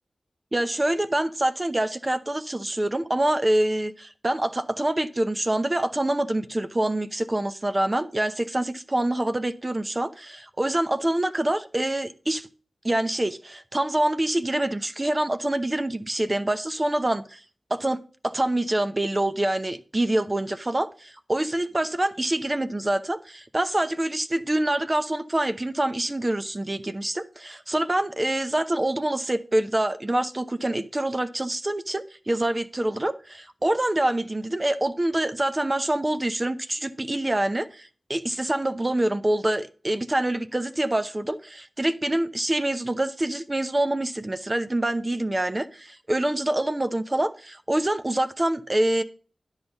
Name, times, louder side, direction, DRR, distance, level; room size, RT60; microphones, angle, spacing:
voice 1, 0.5-12.5 12.8-17.4 17.7-49.0, right 1 dB, 30° right, 0.8 m, -26 dB
10.0 x 4.0 x 7.1 m
cardioid pair, 45°, 0 cm